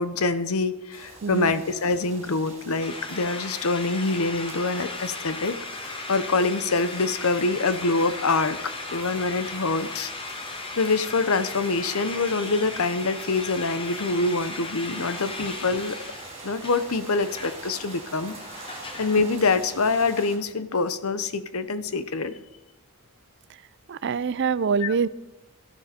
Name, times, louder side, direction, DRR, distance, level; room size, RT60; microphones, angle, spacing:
voice 1, 0.0-10.1 10.4-16.0 16.4-18.3 18.7-22.4 24.8-24.9, left 3 dB, 80° left, 13 dB, 0.9 m, -25 dB
sound 1, 0.9-20.4, right 3 dB, 30° right, 3.6 m, -43 dB
voice 2, 1.2-1.5 23.9-25.1, right 6 dB, 55° right, 18 dB, 0.4 m, -25 dB
sound 2, 2.8-19.2, left 3 dB, 25° left, 1.3 m, -37 dB
17.0 x 12.5 x 4.4 m, 1.0 s
head